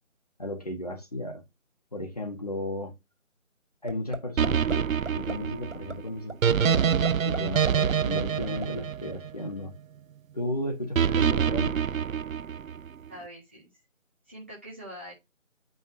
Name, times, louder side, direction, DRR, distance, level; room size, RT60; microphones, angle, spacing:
voice 1, 0.4-1.4 1.9-2.9 3.8-9.7 10.3-11.8, left 1 dB, 30° left, 1.4 m, -34 dB
sound 1, 3.9-4.2 4.4-4.8 5.1-5.3 5.7-5.9 6.3-6.4 6.7-7.4 7.7-8.7, right 3 dB, 60° right, 2.4 m, -34 dB
sound 2, 4.4-9.7 11.0-12.9, right 8 dB, 80° right, 0.5 m, -26 dB
voice 2, 13.1-13.7 14.3-15.1, equal, 10° right, 1.3 m, -43 dB
9.2 x 5.4 x 2.6 m
figure-of-eight pair, 165°, 40 cm